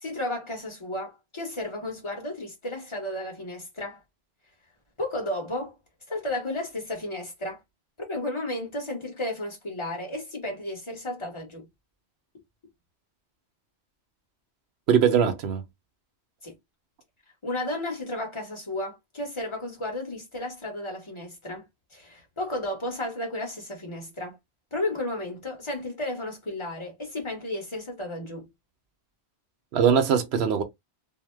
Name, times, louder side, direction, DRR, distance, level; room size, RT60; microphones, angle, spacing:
voice 1, 0.0-4.0 5.0-5.7 6.1-7.6 8.1-11.7 16.4-16.6 17.4-21.6 21.9-24.4 24.7-28.5, left 1 dB, 30° left, 1.2 m, -33 dB
voice 2, 14.9-15.6 29.7-30.6, right 7 dB, 75° right, 0.9 m, -21 dB
2.7 x 2.1 x 3.2 m
omnidirectional pair, 1.1 m